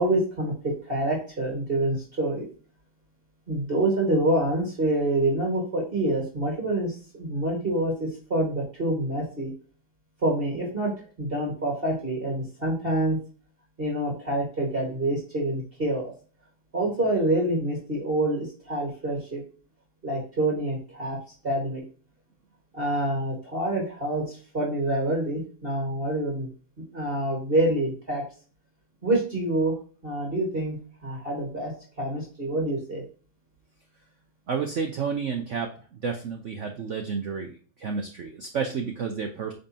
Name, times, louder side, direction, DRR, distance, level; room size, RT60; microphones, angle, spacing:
voice 1, 0.0-2.4 3.5-9.5 10.2-10.9 11.2-13.2 13.8-16.0 16.7-19.4 20.0-21.2 21.4-21.8 22.7-26.5 26.9-28.2 29.0-29.7 30.0-30.8 31.0-31.7 32.0-33.0, right 1 dB, 30° right, -2 dB, 1.9 m, -26 dB
voice 2, 34.5-35.7 36.0-39.5, right 6 dB, 80° right, 4 dB, 0.6 m, -30 dB
8.8 x 4.1 x 2.8 m, 0.39 s
omnidirectional pair, 2.2 m